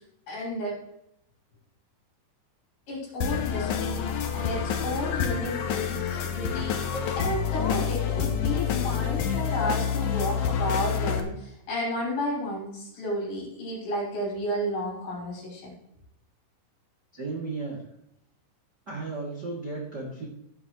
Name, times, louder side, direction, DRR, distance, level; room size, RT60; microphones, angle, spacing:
voice 1, 0.3-0.8 2.9-15.7, left 1 dB, 60° left, -4 dB, 6.9 m, -32 dB
sound 1, 3.2-11.2, left 7 dB, 90° left, 1.7 m, -28 dB
Piano, 6.9-9.9, right 2 dB, 20° left, 2.2 m, -46 dB
voice 2, 17.1-17.8 18.9-20.2, right 3 dB, 30° right, -3 dB, 2.1 m, -34 dB
16.0 x 9.2 x 3.1 m, 0.79 s
omnidirectional pair, 5.3 m